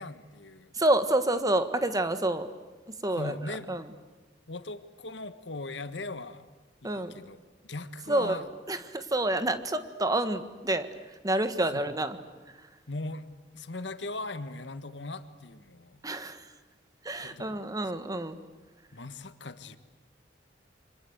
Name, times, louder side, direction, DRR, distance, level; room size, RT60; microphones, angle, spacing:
voice 1, 0.0-0.7 3.1-3.7 4.5-6.4 6.8-8.5 11.7-11.8 12.9-13.2 13.5-16.0 17.2-17.6 18.9-19.8, left 2 dB, 80° left, 11 dB, 1.5 m, -39 dB
voice 2, 0.7-2.5 3.0-3.3 3.7-3.8 6.8-7.1 8.1-8.4 8.7-10.9 11.2-12.2 16.0-16.4 17.0-18.4, right 1 dB, 20° right, 10 dB, 1.6 m, -28 dB
28.0 x 25.5 x 8.1 m, 1.3 s
head